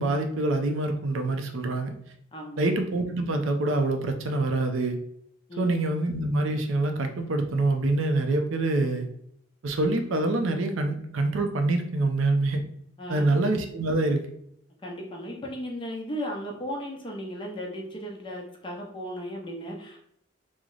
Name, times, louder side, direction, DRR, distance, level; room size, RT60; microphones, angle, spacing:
voice 1, 0.0-1.9 2.6-5.0 5.6-9.1 9.6-12.6 13.1-14.2, right 2 dB, 90° right, 5 dB, 0.5 m, -25 dB
voice 2, 2.3-2.6 5.5-5.7 13.0-13.2 14.8-20.0, equal, 25° left, 0 dB, 0.6 m, -36 dB
3.1 x 2.0 x 3.7 m, 0.71 s
head